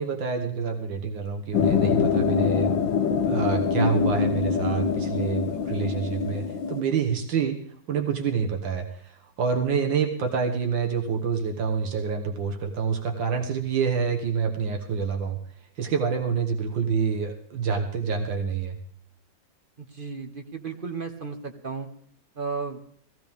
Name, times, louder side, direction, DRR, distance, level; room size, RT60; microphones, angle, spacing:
voice 1, 0.0-2.7 3.3-7.6 7.9-15.4 15.8-18.8, right 6 dB, 80° right, 4 dB, 1.8 m, -27 dB
sound 1, 1.5-6.8, left 6 dB, 80° left, 1.8 m, -24 dB
voice 2, 19.9-21.9 22.4-22.8, right 5 dB, 35° right, 5 dB, 0.9 m, -34 dB
17.5 x 15.5 x 3.5 m, 0.63 s
omnidirectional pair, 2.0 m